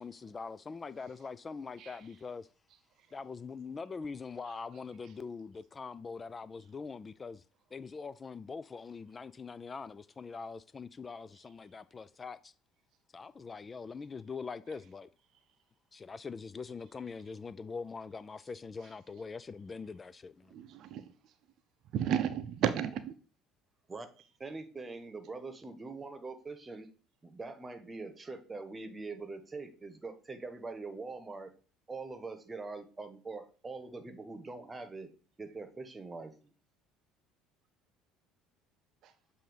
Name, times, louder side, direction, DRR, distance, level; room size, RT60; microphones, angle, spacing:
voice 1, 0.0-2.5 3.1-7.4 7.7-12.5 13.1-15.1 15.9-20.5, left 5 dB, 30° left, 0.3 m, -43 dB
voice 2, 20.5-21.0 21.9-23.1 39.0-39.1, right 9 dB, 55° right, 0.6 m, -32 dB
voice 3, 24.4-26.9 27.2-31.5 31.9-35.1 35.4-36.5, right 3 dB, 20° right, 1.1 m, -43 dB
7.6 x 2.7 x 4.9 m
hypercardioid pair, 60°, 0 cm